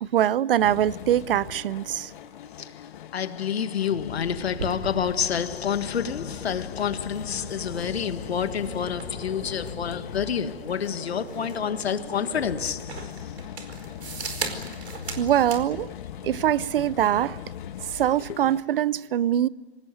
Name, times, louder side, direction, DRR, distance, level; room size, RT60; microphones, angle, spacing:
voice 1, 0.0-2.1 15.2-15.9 16.2-17.4 17.9-19.5, right 11 dB, 60° right, 0.7 m, -23 dB
sound 1, 0.6-18.6, left 10 dB, 50° left, 1.4 m, -40 dB
voice 2, 2.6-13.3 18.3-18.4, left 8 dB, 75° left, 1.7 m, -29 dB
sound 2, 4.2-15.6, right 4 dB, 80° right, 4.8 m, -39 dB
26.0 x 19.0 x 9.2 m
hypercardioid pair, 135°, 32 cm